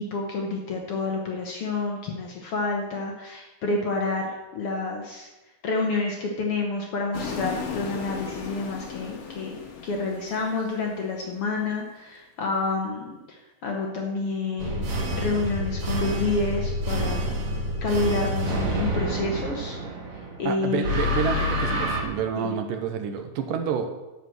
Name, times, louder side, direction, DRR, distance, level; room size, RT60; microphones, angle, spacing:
voice 1, 0.0-5.3 5.6-14.9 15.2-17.2 17.8-19.8 20.1-21.0 22.4-22.5, left 3 dB, 80° left, 0 dB, 1.3 m, -29 dB
sound 1, 7.1-11.4, left 6 dB, 60° left, 1.8 m, -36 dB
sound 2, 14.6-20.4 20.8-22.0, equal, 50° right, 2.3 m, -27 dB
voice 2, 20.4-24.0, right 7 dB, 75° right, 6 dB, 2.3 m, -28 dB
11.5 x 4.8 x 7.6 m, 1.1 s
omnidirectional pair, 4.2 m